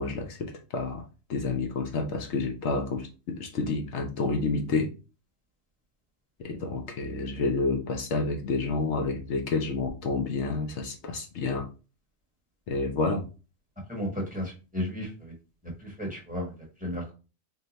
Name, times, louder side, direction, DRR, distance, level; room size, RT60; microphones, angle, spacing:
voice 1, 0.0-4.9 6.4-11.7 12.7-13.2, left 3 dB, 70° left, 3 dB, 0.8 m, -29 dB
voice 2, 13.9-15.3 15.6-17.1, left 1 dB, 5° right, -1 dB, 1.0 m, -34 dB
2.8 x 2.3 x 4.0 m, 0.32 s
omnidirectional pair, 1.3 m